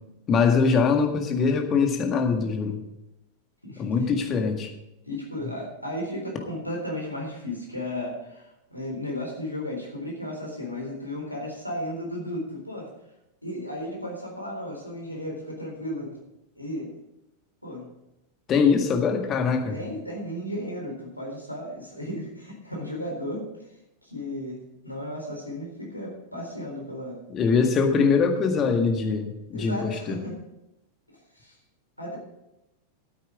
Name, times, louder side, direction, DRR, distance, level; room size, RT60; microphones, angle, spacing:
voice 1, 0.3-2.8 3.8-4.7 18.5-19.8 27.3-30.2, left 5 dB, 30° left, 4 dB, 1.8 m, -23 dB
voice 2, 3.6-4.1 5.0-12.9 13.4-16.2 16.6-16.9 17.6-17.9 19.7-23.5 24.0-27.2 29.5-30.4 31.3-31.6 32.0-32.2, left 1 dB, 90° left, -1 dB, 3.8 m, -34 dB
13.5 x 8.5 x 5.0 m, 0.90 s
figure-of-eight pair, 90°, 0 cm